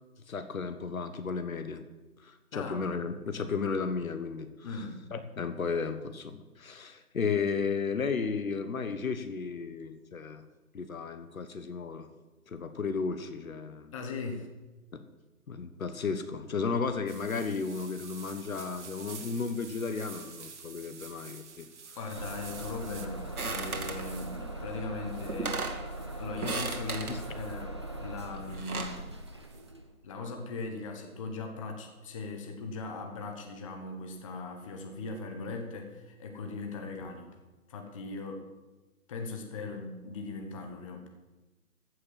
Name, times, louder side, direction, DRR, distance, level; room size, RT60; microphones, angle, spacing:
voice 1, 0.3-1.8 2.2-4.5 5.1-10.4 10.7-12.1 12.5-13.9 14.9-15.0 15.5-21.7 27.1-27.2, left 5 dB, 65° left, 9 dB, 1.4 m, -34 dB
voice 2, 2.5-2.9 4.6-5.0 13.9-14.5 22.0-25.7 26.1-27.7 28.0-29.2 30.0-37.4 37.7-38.5 39.1-41.1, left 3 dB, 20° left, 3 dB, 1.3 m, -39 dB
sound 1, 17.1-29.7, right 5 dB, 50° right, 1.6 m, -50 dB
Bus / Engine starting, 22.1-29.9, right 1 dB, 20° right, 0.5 m, -40 dB
sound 2, 23.4-24.1 25.0-25.1 25.3-25.8 26.4-27.2 28.3-29.0, right 3 dB, 75° right, 2.2 m, -35 dB
14.5 x 6.5 x 7.5 m, 1.1 s
figure-of-eight pair, 155°, 44 cm